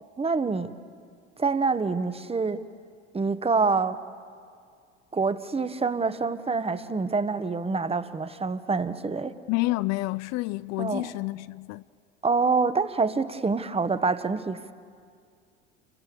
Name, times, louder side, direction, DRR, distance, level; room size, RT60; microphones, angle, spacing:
voice 1, 0.2-0.7 1.4-2.6 3.1-4.0 5.1-9.3 10.8-11.1 12.2-14.7, right 4 dB, 15° right, 1.4 m, -26 dB
voice 2, 9.5-11.8, left 20 dB, 50° left, 0.5 m, -29 dB
29.5 x 24.0 x 7.1 m
hypercardioid pair, 75°, 35 cm